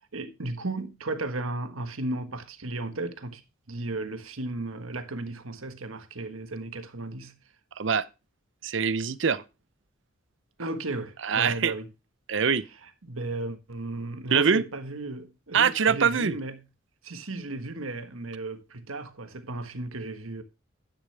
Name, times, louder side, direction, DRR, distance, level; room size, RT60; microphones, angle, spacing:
voice 1, 0.1-3.4 3.7-7.4 10.6-11.9 12.8-16.6 17.0-20.4, right 2 dB, 90° right, 1.4 m, -35 dB
voice 2, 7.8-8.1 8.6-9.4 11.2-11.7 12.3-12.6 14.3-14.6 15.5-16.4, right 6 dB, 65° right, 0.7 m, -23 dB
11.0 x 10.0 x 3.3 m
head